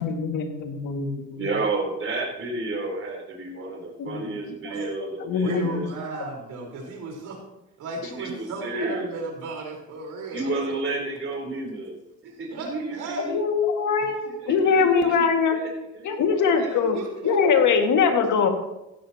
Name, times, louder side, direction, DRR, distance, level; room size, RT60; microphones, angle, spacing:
voice 1, 0.0-0.5 0.8-1.5 4.0-4.3 5.0-5.8 13.3-15.6 16.0-17.0 17.2-18.5, left 5 dB, 75° left, 3 dB, 2.2 m, -22 dB
voice 2, 1.3-5.9 8.2-9.0 10.3-12.0 12.4-13.4 14.3-15.2 15.5-16.2 16.5-16.9, right 3 dB, 45° right, -1 dB, 4.0 m, -31 dB
voice 3, 5.3-7.4 7.8-10.5 12.2-13.3 14.0-14.1 14.7-14.8 16.2-17.7, right 3 dB, 80° right, 0 dB, 4.6 m, -36 dB
16.0 x 12.5 x 3.0 m, 0.90 s
cardioid pair, 90°, 30 cm